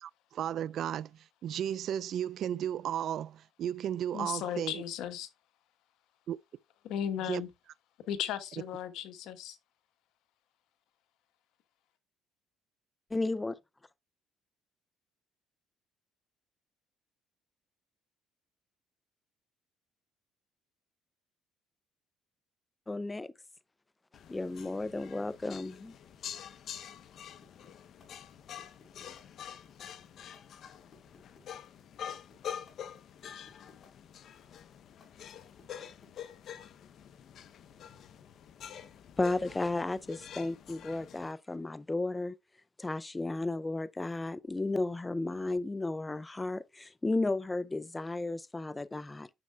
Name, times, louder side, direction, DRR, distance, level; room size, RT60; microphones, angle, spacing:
voice 1, 0.0-4.8 6.3-6.4 7.2-7.4, right 10 dB, 60° right, 0.3 m, -34 dB
voice 2, 4.1-5.3 6.8-7.5 8.1-9.6, left 10 dB, 80° left, 1.2 m, -36 dB
voice 3, 13.1-13.6 22.9-23.3 24.3-26.0 39.2-42.4 42.8-49.3, left 2 dB, 15° left, 0.4 m, -33 dB
sound 1, 24.1-41.3, left 9 dB, 55° left, 0.7 m, -47 dB
sound 2, 27.4-36.6, left 4 dB, 40° left, 4.1 m, -61 dB
9.6 x 6.5 x 2.3 m
cardioid pair, 105°, 0 cm